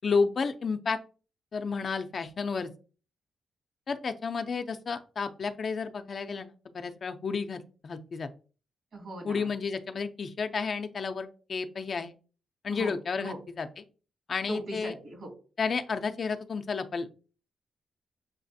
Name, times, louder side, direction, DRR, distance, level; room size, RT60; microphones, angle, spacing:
voice 1, 0.0-1.0 1.5-2.7 3.9-8.3 9.2-12.1 12.6-13.8 14.3-14.9 15.6-17.1, left 5 dB, 50° left, 8 dB, 0.5 m, -31 dB
voice 2, 8.9-9.5 12.7-13.4 14.5-15.3, right 1 dB, 65° right, 0 dB, 2.2 m, -39 dB
6.8 x 2.4 x 2.7 m, 0.37 s
cardioid pair, 90°, 0 cm